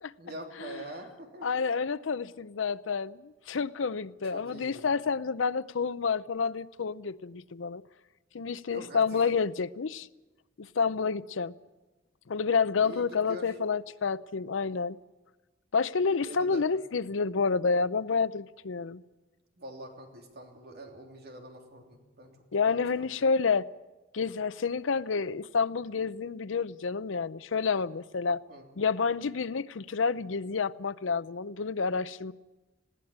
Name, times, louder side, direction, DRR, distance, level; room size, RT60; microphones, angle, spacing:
voice 1, 0.2-1.5 4.3-4.9 8.7-9.3 12.8-13.5 16.2-16.6 19.6-22.4 22.7-23.1 28.5-28.7, right 1 dB, 55° right, 3.2 m, -45 dB
voice 2, 1.4-7.8 8.3-10.1 10.6-11.5 12.3-15.0 15.7-19.0 22.5-23.7 24.1-28.4 28.8-32.3, left 5 dB, 90° left, 0.6 m, -29 dB
20.5 x 17.0 x 8.7 m
head